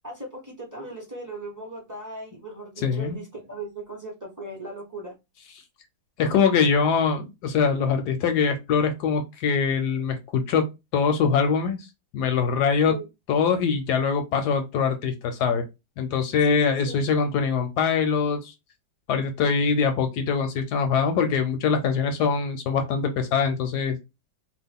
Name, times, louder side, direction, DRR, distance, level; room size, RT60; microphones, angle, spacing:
voice 1, 0.0-5.1 12.8-13.1 16.4-17.1, right 1 dB, 15° right, 0.6 m, -37 dB
voice 2, 2.8-3.2 6.2-11.8 12.1-13.0 13.3-15.6 16.0-18.5 19.1-24.0, left 6 dB, 70° left, 1.0 m, -23 dB
3.0 x 2.4 x 3.5 m
omnidirectional pair, 2.1 m